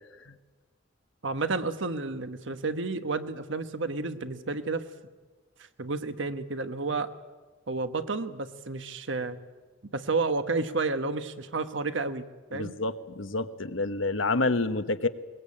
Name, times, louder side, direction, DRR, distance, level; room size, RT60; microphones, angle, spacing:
voice 1, 1.2-4.9 5.8-7.1 7.7-9.4 9.9-12.2 12.5-12.7, right 3 dB, 70° right, 10 dB, 1.3 m, -31 dB
voice 2, 12.5-15.1, left 3 dB, 85° left, 10 dB, 1.1 m, -28 dB
22.0 x 21.0 x 8.6 m, 1.3 s
head